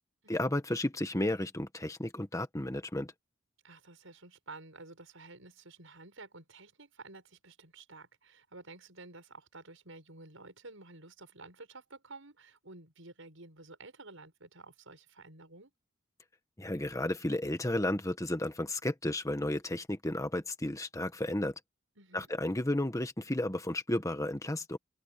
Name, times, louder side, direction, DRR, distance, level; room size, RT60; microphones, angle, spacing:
voice 1, 0.3-3.1 16.6-21.5 22.1-24.8, left 1 dB, 15° left, 1.5 m, -33 dB
voice 2, 3.6-15.7 22.0-22.3, right 3 dB, 75° right, 7.1 m, -51 dB
open air
head